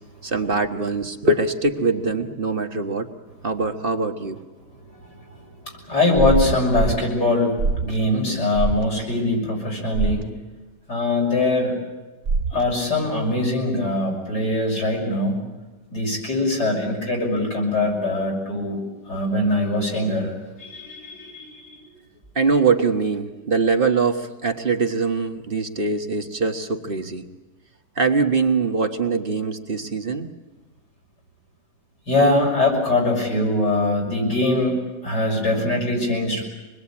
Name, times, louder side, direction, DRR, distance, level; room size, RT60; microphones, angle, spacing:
voice 1, 0.2-3.1 3.4-4.4 22.3-27.2 28.0-30.3, right 4 dB, 35° right, 6 dB, 1.4 m, -22 dB
voice 2, 4.7-10.3 10.9-11.7 12.5-15.4 15.9-18.8 19.1-20.3 20.6-21.9 32.1-34.8 35.0-36.4, left 2 dB, 75° left, 0 dB, 6.9 m, -22 dB
sound 1, 6.1-7.0 7.6-8.0 8.5-8.8 9.9-10.2 12.3-12.6, right 4 dB, 50° right, 1.1 m, -23 dB
26.0 x 21.0 x 8.6 m, 1.2 s
omnidirectional pair, 1.8 m